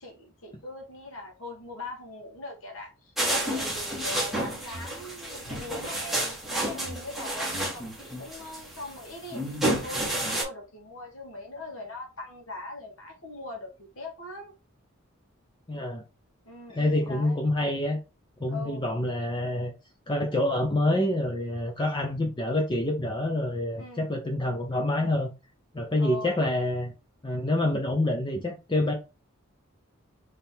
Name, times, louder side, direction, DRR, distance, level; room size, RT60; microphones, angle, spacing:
voice 1, 0.0-9.4 9.7-14.5 16.5-17.4 18.5-18.8 23.8-24.1 26.0-26.4, left 2 dB, 80° left, 1.7 m, -41 dB
sound 1, 3.2-10.4, right 1 dB, ahead, 1.6 m, -30 dB
voice 2, 15.7-16.0 16.7-18.0 18.4-19.7 20.1-25.3 25.7-26.9 27.2-28.9, left 1 dB, 20° left, 0.6 m, -27 dB
3.6 x 3.3 x 4.4 m
head